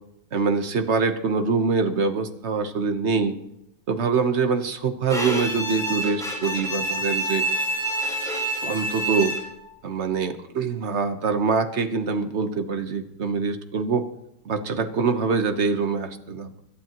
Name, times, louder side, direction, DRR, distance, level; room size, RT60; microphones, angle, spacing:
voice 1, 0.3-3.4 3.9-7.4 8.6-9.3 9.8-14.0 14.4-16.6, right 4 dB, 45° right, 7 dB, 1.0 m, -24 dB
Bowed string instrument, 5.1-9.7, right 1 dB, ahead, 3.8 m, -27 dB
26.0 x 12.0 x 3.0 m, 0.87 s
omnidirectional pair, 2.3 m